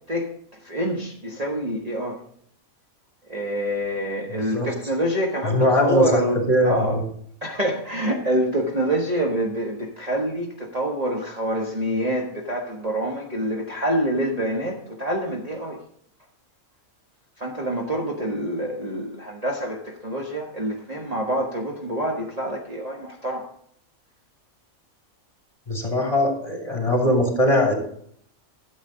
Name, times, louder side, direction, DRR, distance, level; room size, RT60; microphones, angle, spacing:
voice 1, 0.6-2.2 3.3-7.0 7.4-15.8 17.4-23.5, right 1 dB, 30° right, -2 dB, 1.4 m, -26 dB
voice 2, 5.5-6.2 6.5-7.0 25.7-27.8, left 1 dB, 25° left, 0 dB, 2.9 m, -20 dB
13.0 x 7.9 x 3.8 m, 0.66 s
omnidirectional pair, 1.4 m